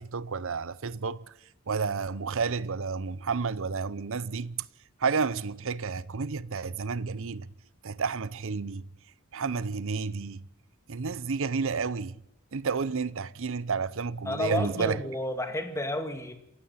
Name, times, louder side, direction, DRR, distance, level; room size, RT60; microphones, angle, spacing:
voice 1, 0.0-1.3 1.7-4.7 5.0-7.5 7.8-8.8 9.3-10.4 10.9-12.2 12.5-15.0, right 5 dB, 65° right, 0.7 m, -31 dB
voice 2, 14.2-16.3, left 1 dB, 15° left, 2.2 m, -31 dB
27.5 x 16.5 x 5.8 m
head